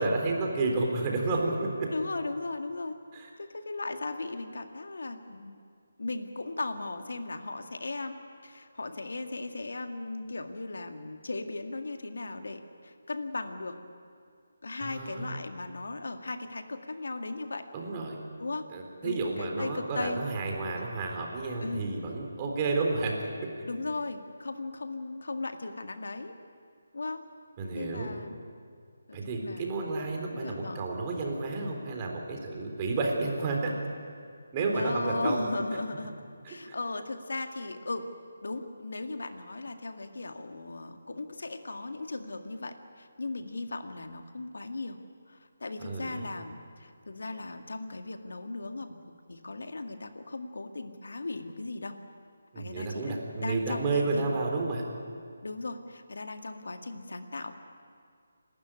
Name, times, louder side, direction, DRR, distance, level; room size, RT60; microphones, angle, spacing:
voice 1, 0.0-1.9 3.1-3.3 14.8-15.3 17.7-18.2 18.7-23.2 27.6-28.1 29.1-33.7 34.5-35.4 36.4-36.5 45.8-46.3 52.5-54.8, right 3 dB, 25° right, 1 dB, 3.7 m, -31 dB
voice 2, 1.9-3.0 3.4-5.6 6.0-8.2 8.4-13.8 14.6-17.6 18.4-18.7 19.0-20.2 20.7-20.8 21.6-21.8 23.7-26.3 26.9-27.2 27.7-28.4 29.1-29.6 30.3-30.8 34.7-38.1 38.4-45.0 45.3-49.0 49.3-52.0 52.6-54.4 55.4-57.6, left 2 dB, 70° left, 6 dB, 1.9 m, -37 dB
28.5 x 12.5 x 10.0 m, 2.2 s
figure-of-eight pair, 155°, 0 cm